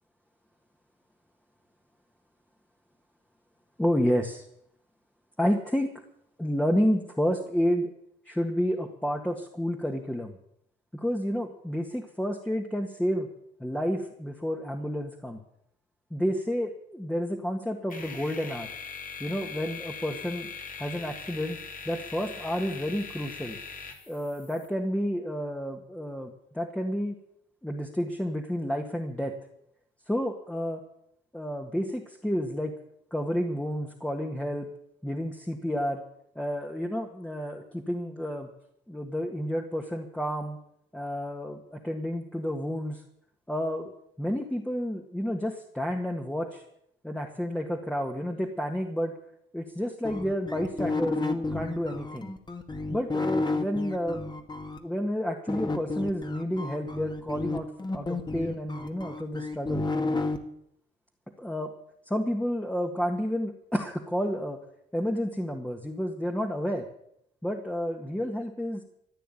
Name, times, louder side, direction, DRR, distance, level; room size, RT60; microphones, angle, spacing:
voice 1, 3.8-4.5 5.4-5.9 6.4-7.9 8.3-10.4 10.9-13.3 13.6-15.4 16.1-18.7 19.2-20.5 20.8-21.6 21.9-23.6 24.1-27.2 27.6-29.4 30.1-30.8 31.3-32.7 33.1-34.7 35.0-36.0 36.4-38.5 38.9-40.6 40.9-43.0 43.5-43.9 44.2-46.6 47.0-49.1 49.5-52.3 52.9-54.3 54.8-59.8 61.4-61.7 62.1-64.6 64.9-66.9 67.4-68.8, equal, 5° left, 1 dB, 1.8 m, -30 dB
sound 1, 17.9-24.7, left 5 dB, 45° left, 2.7 m, -41 dB
sound 2, 50.0-54.8 55.5-60.4, left 3 dB, 20° left, 1.9 m, -31 dB
15.0 x 9.3 x 9.1 m, 0.73 s
cardioid pair, 90°, 20 cm